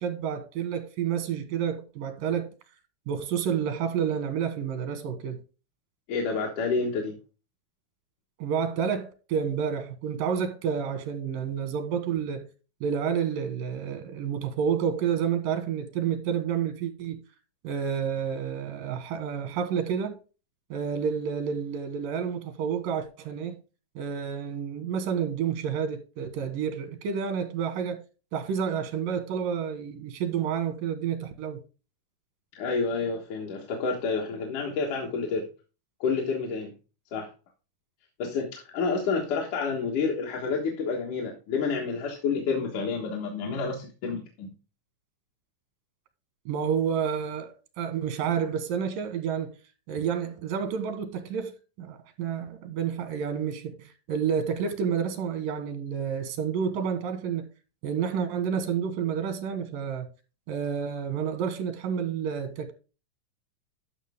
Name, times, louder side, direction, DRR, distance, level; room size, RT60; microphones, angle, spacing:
voice 1, 0.0-2.5 3.1-5.4 8.4-12.5 12.8-17.2 17.6-20.2 20.7-23.6 24.0-28.0 28.3-31.6 46.5-49.5 49.9-57.5 57.8-60.1 60.5-62.7, right 7 dB, 90° right, 2.9 m, -29 dB
voice 2, 6.1-7.2 32.6-35.5 36.0-36.7 37.1-37.3 38.2-44.5, left 4 dB, 70° left, 2.8 m, -29 dB
12.0 x 5.9 x 3.5 m
omnidirectional pair, 3.8 m